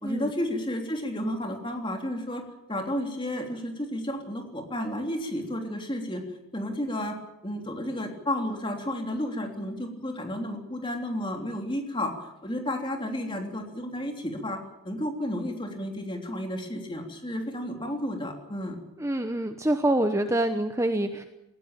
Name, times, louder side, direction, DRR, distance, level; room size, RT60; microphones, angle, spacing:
voice 1, 0.0-2.4 2.7-6.2 6.5-7.2 7.4-18.8, left 1 dB, 20° left, 3 dB, 3.2 m, -32 dB
voice 2, 19.0-21.2, right 1 dB, 15° right, 7 dB, 0.9 m, -26 dB
20.5 x 17.0 x 9.0 m, 0.96 s
head